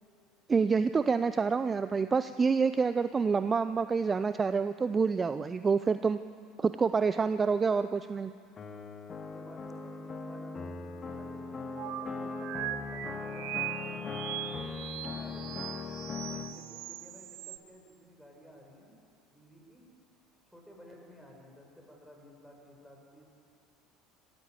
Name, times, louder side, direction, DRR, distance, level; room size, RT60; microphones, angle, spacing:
voice 1, 0.5-6.2 6.6-8.3, right 5 dB, 25° right, 13 dB, 0.6 m, -27 dB
voice 2, 7.1-7.6 9.2-14.4 14.8-18.9 19.3-19.9 20.4-23.3, equal, 5° left, 0 dB, 6.8 m, -54 dB
sound 1, 8.6-16.5, left 4 dB, 35° left, 1.7 m, -39 dB
sound 2, 11.8-17.6, right 13 dB, 55° right, 1.3 m, -40 dB
26.0 x 15.0 x 8.2 m, 2.5 s
figure-of-eight pair, 70°, 0 cm